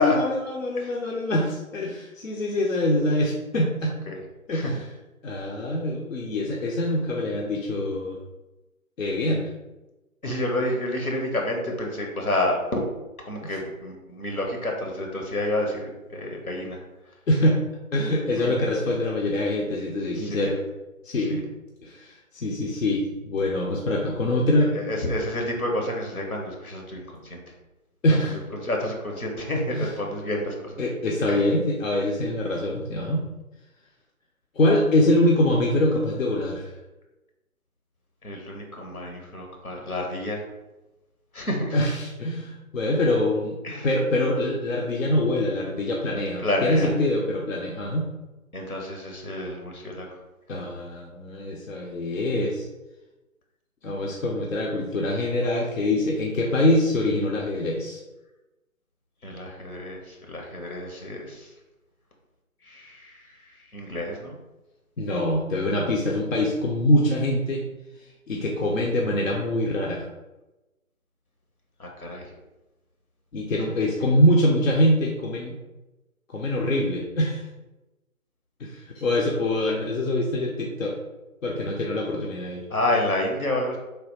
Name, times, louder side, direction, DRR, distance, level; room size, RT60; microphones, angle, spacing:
voice 1, 0.0-3.9 4.5-4.9 5.2-8.2 9.0-9.4 13.4-13.6 17.3-17.6 17.9-20.6 21.0-21.4 21.8-24.7 28.0-28.4 29.7-30.0 30.8-33.2 34.6-36.7 41.7-43.6 43.8-48.0 50.5-52.7 53.8-58.0 65.0-67.6 68.3-70.1 73.3-75.6 76.3-77.4 78.6-81.0 81.4-82.7, left 1 dB, 65° left, -2 dB, 0.7 m, -24 dB
voice 2, 10.2-12.6 13.2-16.8 18.4-18.5 20.2-20.5 21.3-21.4 24.7-27.4 28.5-30.8 31.3-31.4 38.2-40.4 41.3-41.7 43.6-43.9 46.4-46.9 48.5-50.1 59.2-61.5 62.7-63.1 63.7-64.4 71.8-72.2 73.8-73.9 82.7-83.8, left 1 dB, 90° left, 1 dB, 1.1 m, -29 dB
3.3 x 2.1 x 4.1 m, 1.0 s
figure-of-eight pair, 150°, 42 cm